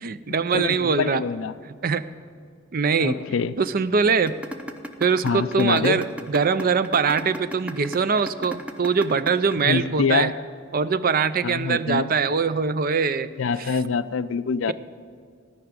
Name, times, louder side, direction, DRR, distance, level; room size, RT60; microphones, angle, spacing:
voice 1, 0.0-1.2 1.8-2.0 2.7-3.2 3.6-4.3 5.0-10.3 10.7-13.3 13.6-13.8, right 5 dB, 45° right, 14 dB, 0.5 m, -22 dB
voice 2, 0.5-1.5 3.0-3.6 5.2-6.0 9.7-10.4 11.4-12.1 13.4-14.7, left 5 dB, 75° left, 15 dB, 0.5 m, -25 dB
sound 1, 4.3-10.3, right 1 dB, 5° right, 0.8 m, -34 dB
17.0 x 5.9 x 9.5 m, 2.2 s
head